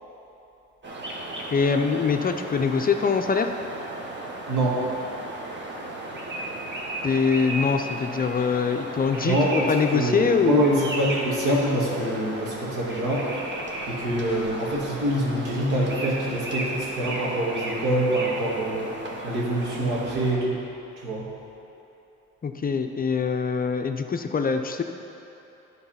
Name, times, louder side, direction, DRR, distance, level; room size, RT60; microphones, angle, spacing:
sound 1, 0.8-20.3, right 1 dB, 40° right, 1.4 m, -35 dB
voice 1, 1.5-3.5 7.0-9.4 9.7-10.9 22.4-24.8, left 5 dB, 30° left, 5 dB, 0.5 m, -23 dB
voice 2, 4.5-4.8 9.2-13.3 13.8-18.9 19.2-20.6 21.0-21.3, right 1 dB, 90° right, -5 dB, 2.0 m, -25 dB
10.5 x 4.0 x 5.7 m, 3.0 s
cardioid pair, 90°, 30 cm